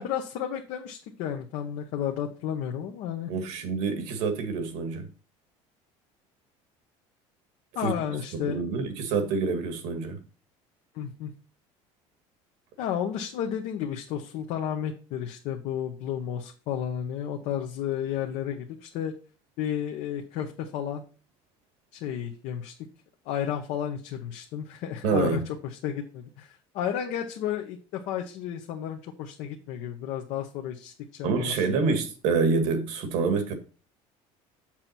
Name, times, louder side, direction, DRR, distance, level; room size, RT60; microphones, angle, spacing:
voice 1, 0.0-3.3 7.7-8.6 10.9-11.3 12.8-19.1 19.6-21.0 21.9-22.7 23.2-25.4 25.8-31.8, left 9 dB, 70° left, 1.1 m, -32 dB
voice 2, 3.3-5.1 7.8-7.9 8.3-10.2 25.0-25.4 31.2-33.5, right 4 dB, 75° right, 1.9 m, -27 dB
7.4 x 6.1 x 4.3 m
cardioid pair, 130°, 13 cm